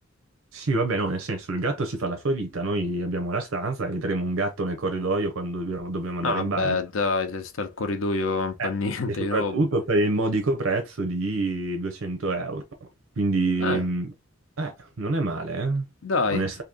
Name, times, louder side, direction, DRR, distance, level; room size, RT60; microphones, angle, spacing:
voice 1, 0.5-6.8 8.6-8.7 9.1-12.6 13.2-14.1 14.6-15.9 16.3-16.6, right 2 dB, 85° right, 0.7 m, -26 dB
voice 2, 6.2-9.6 13.6-13.8 16.0-16.4, left 3 dB, 70° left, 0.6 m, -26 dB
2.9 x 2.7 x 3.7 m
head